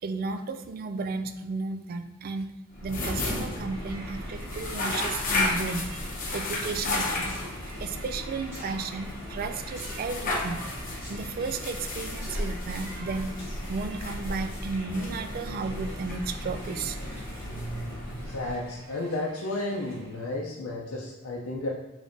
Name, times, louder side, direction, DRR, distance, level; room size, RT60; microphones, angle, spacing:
voice 1, 0.0-2.5 2.8-5.9 6.3-7.4 7.8-10.6 11.1-13.3 13.7-17.0, right 4 dB, 45° right, 9 dB, 0.3 m, -33 dB
sound 1, 2.7-18.9, left 2 dB, 45° left, 0.8 m, -33 dB
Crowd, 3.6-20.3, right 1 dB, 75° right, 1.5 m, -47 dB
sound 2, 7.3-7.5 8.5-8.7 9.8-10.1 11.0-11.2 12.2-12.4 13.4-13.7 14.1-14.2, equal, 15° right, 1.3 m, -45 dB
voice 2, 18.2-21.7, left 2 dB, 90° left, -2 dB, 0.5 m, -32 dB
5.0 x 3.3 x 2.6 m, 0.97 s
head